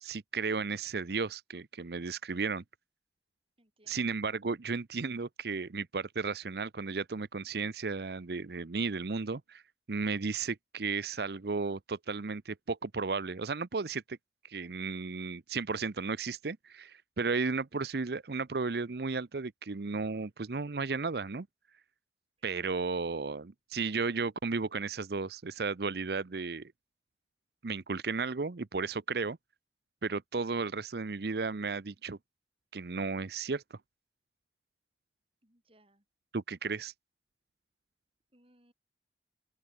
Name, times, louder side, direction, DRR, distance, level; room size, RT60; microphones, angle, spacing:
voice 1, 0.0-2.6 3.9-9.6 9.9-14.2 14.4-21.5 22.4-26.7 27.6-29.4 30.0-32.2 32.7-33.8 36.3-36.9, right 4 dB, 65° right, 0.7 m, -34 dB
voice 2, 3.6-4.1 22.4-22.5 35.4-36.0 38.3-38.7, right 1 dB, 30° right, 6.6 m, -66 dB
open air
head